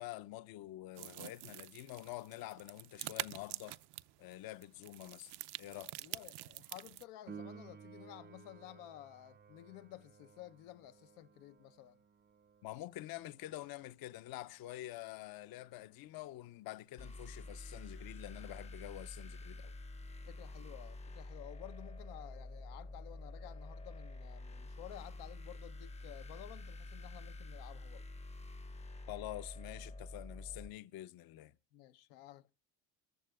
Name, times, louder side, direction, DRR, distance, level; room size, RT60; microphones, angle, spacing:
voice 1, 0.0-3.8 4.2-5.3 5.6-6.0 12.6-19.7 29.1-31.5, left 15 dB, 55° left, 0.7 m, -47 dB
sound 1, 1.0-7.0, right 16 dB, 60° right, 0.7 m, -46 dB
voice 2, 6.0-12.0 20.2-28.1 31.7-32.5, left 14 dB, 85° left, 0.8 m, -53 dB
Piano, 7.3-17.7 25.2-25.3, right 6 dB, 25° right, 0.6 m, -57 dB
sound 2, 17.0-30.7, left 2 dB, 15° left, 0.6 m, -48 dB
28.0 x 14.5 x 2.2 m
supercardioid pair, 85°, 45 cm